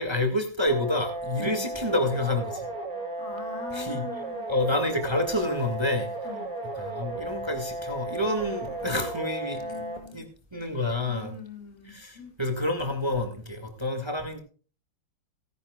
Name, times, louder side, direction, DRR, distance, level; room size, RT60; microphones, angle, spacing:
voice 1, 0.0-2.7 3.7-4.0 4.5-6.1 6.7-9.9 10.1-11.3 11.8-14.4, left 1 dB, 15° right, 5 dB, 1.6 m, -28 dB
sound 1, 0.7-10.0, right 2 dB, 5° left, 5.2 m, -35 dB
voice 2, 3.2-4.5 6.2-6.4 9.6-10.2 11.1-12.3, left 5 dB, 75° left, 3 dB, 3.3 m, -42 dB
18.0 x 10.5 x 2.3 m, 0.39 s
omnidirectional pair, 2.3 m